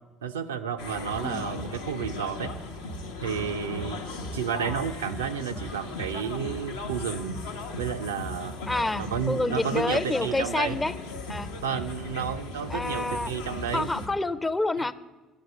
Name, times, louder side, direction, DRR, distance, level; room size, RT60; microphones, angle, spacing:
voice 1, 0.2-2.5 3.2-4.0 4.3-7.4 7.8-8.5 9.0-10.8 11.6-13.9, right 7 dB, 75° right, 8 dB, 0.4 m, -31 dB
sound 1, 0.8-14.1, left 2 dB, 75° left, 0.7 m, -37 dB
voice 2, 8.7-10.9 11.3-11.5 12.7-13.3 13.7-14.9, left 2 dB, 15° left, 15 dB, 0.5 m, -28 dB
7.8 x 6.7 x 7.8 m, 1.3 s
figure-of-eight pair, 55°, 0 cm